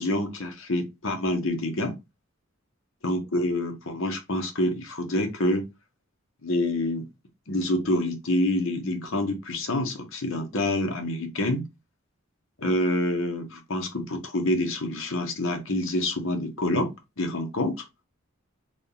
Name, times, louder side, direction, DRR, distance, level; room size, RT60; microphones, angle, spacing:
voice 1, 0.0-2.0 3.0-5.6 6.4-7.1 7.5-11.6 12.6-17.8, left 1 dB, 70° left, 1.0 m, -27 dB
3.8 x 2.4 x 3.7 m
head